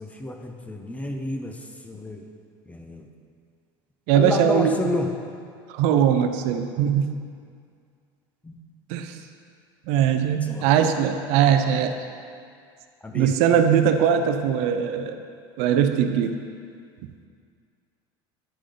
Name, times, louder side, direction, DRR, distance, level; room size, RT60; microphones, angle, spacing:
voice 1, 0.0-2.3 2.7-3.1 4.1-5.1 8.4-8.6 9.0-9.1 10.4-10.7 13.0-13.3, left 1 dB, 10° left, 4 dB, 0.7 m, -31 dB
voice 2, 4.1-4.8 5.7-7.2 8.9-9.1 9.9-11.9 13.1-15.2 15.6-16.4, right 8 dB, 70° right, 7 dB, 0.5 m, -20 dB
9.9 x 5.0 x 3.9 m, 2.2 s
supercardioid pair, 115°, 12 cm